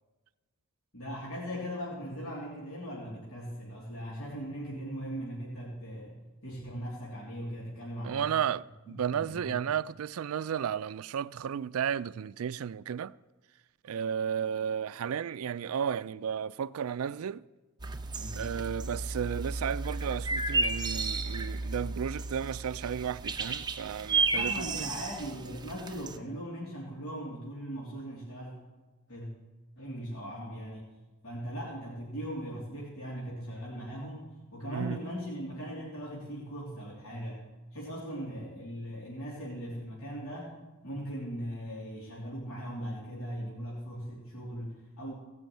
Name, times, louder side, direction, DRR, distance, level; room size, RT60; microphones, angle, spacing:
voice 1, 0.9-8.3 8.9-9.5 18.1-18.4 24.3-28.5 29.1-29.3 29.8-30.9 31.2-37.4 37.7-40.6 40.8-45.1, equal, 70° left, 3.1 m, -39 dB
voice 2, 8.0-13.1 13.8-17.4 18.4-24.8 34.7-35.0, right 8 dB, 70° right, 0.4 m, -33 dB
sound 1, 17.8-26.2, right 3 dB, 20° right, 0.8 m, -33 dB
17.0 x 6.2 x 9.1 m
head